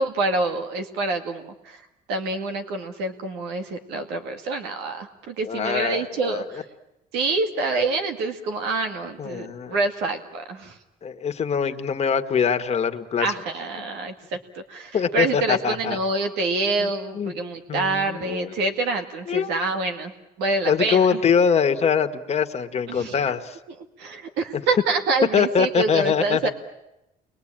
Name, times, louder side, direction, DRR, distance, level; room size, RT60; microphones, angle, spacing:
voice 1, 0.0-1.8 2.1-6.6 7.1-10.7 13.2-20.1 20.4-21.2 22.9-23.2 24.0-26.5, right 3 dB, 90° right, 5 dB, 2.1 m, -26 dB
voice 2, 5.4-6.6 9.2-9.8 11.0-13.3 14.9-16.0 16.8-17.3 17.7-18.5 19.3-19.5 20.6-23.6 25.3-26.5, left 6 dB, 40° left, 7 dB, 1.7 m, -23 dB
29.5 x 22.5 x 8.9 m, 0.91 s
cardioid pair, 110°, 17 cm